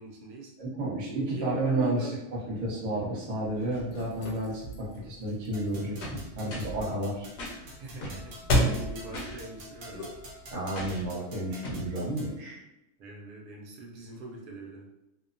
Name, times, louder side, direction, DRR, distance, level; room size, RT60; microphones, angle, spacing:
voice 1, 0.0-0.5 1.3-2.5 7.7-10.2 13.0-14.8, right 3 dB, 80° right, -1 dB, 1.1 m, -41 dB
voice 2, 0.6-2.1 2.5-7.3 10.5-12.6, right 1 dB, 35° right, -6 dB, 0.6 m, -31 dB
sound 1, 3.4-10.5, equal, 85° left, 1.2 m, -34 dB
sound 2, 5.5-12.4, right 1 dB, 60° right, 0.9 m, -48 dB
sound 3, 6.0-6.8 7.4-7.6 8.0-8.8 9.1-9.4 10.7-11.1 11.6-11.9, equal, 55° left, 0.8 m, -38 dB
2.8 x 2.1 x 2.5 m, 0.89 s
omnidirectional pair, 1.7 m